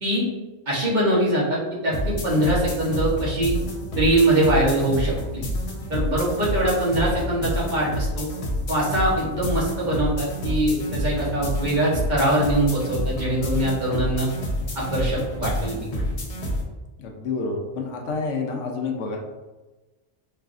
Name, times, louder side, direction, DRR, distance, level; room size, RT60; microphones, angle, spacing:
voice 1, 0.7-3.5 4.0-5.4 5.9-8.3 8.7-14.3 14.7-16.0, right 1 dB, 40° right, -6 dB, 0.9 m, -23 dB
sound 1, 1.9-16.6, equal, 50° left, 0.4 m, -28 dB
voice 2, 17.0-19.2, left 4 dB, 80° left, 1 dB, 0.9 m, -28 dB
3.3 x 2.3 x 2.4 m, 1.2 s
omnidirectional pair, 1.3 m